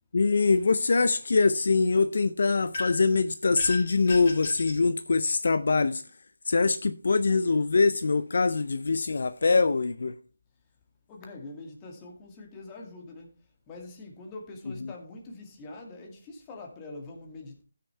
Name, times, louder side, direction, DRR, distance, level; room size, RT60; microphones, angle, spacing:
voice 1, 0.1-6.0 6.5-10.1, left 4 dB, 60° left, 0.5 m, -23 dB
sound 1, 2.7-3.1 3.6-4.8, left 3 dB, 45° left, 3.7 m, -35 dB
voice 2, 11.1-13.3 13.7-17.6, left 2 dB, 20° left, 2.0 m, -44 dB
15.0 x 6.5 x 3.3 m
figure-of-eight pair, 160°, 0 cm